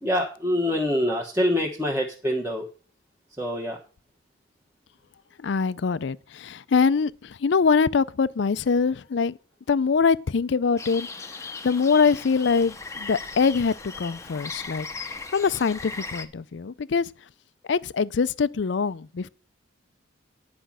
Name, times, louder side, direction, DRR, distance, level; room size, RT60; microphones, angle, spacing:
voice 1, 0.0-2.6 3.4-3.8, left 1 dB, 10° right, 1.3 m, -25 dB
voice 2, 5.4-9.4 9.7-11.1 11.3-14.9 15.3-17.1 17.6-19.3, left 5 dB, 60° left, 0.4 m, -23 dB
sound 1, 10.8-16.3, left 4 dB, 15° left, 0.7 m, -38 dB
10.5 x 5.1 x 7.4 m
head